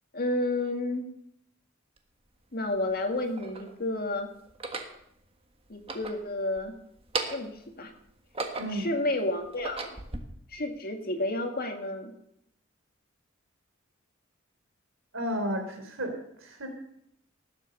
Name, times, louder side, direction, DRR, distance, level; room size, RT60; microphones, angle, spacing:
voice 1, 0.1-1.0 2.5-4.3 5.7-6.8 7.3-7.9 8.7-10.0 10.5-12.1, left 2 dB, 50° left, 4 dB, 2.2 m, -31 dB
sound 1, 2.0-2.1 2.9-3.7 4.5-5.0 5.7-6.7 7.0-7.6 8.1-8.9 9.4-10.2, right 3 dB, 30° right, 1.5 m, -36 dB
voice 2, 8.5-8.9 15.1-16.1 16.4-16.7, equal, 75° right, 5 dB, 3.4 m, -32 dB
18.5 x 8.2 x 6.9 m, 0.73 s
head